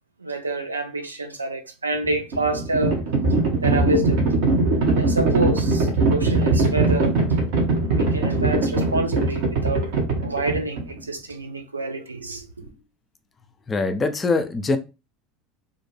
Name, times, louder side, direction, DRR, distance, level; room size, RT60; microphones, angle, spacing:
voice 1, 0.2-3.0 3.6-4.2 5.0-7.1 7.9-9.9 10.2-12.5, right 2 dB, 85° right, 0.4 m, -27 dB
Livestock farm animals working animals, 1.9-11.0, right 3 dB, 60° right, 0.8 m, -21 dB
voice 2, 13.7-14.8, left 3 dB, 25° left, 0.4 m, -23 dB
2.5 x 2.1 x 3.1 m
figure-of-eight pair, 75°, 0 cm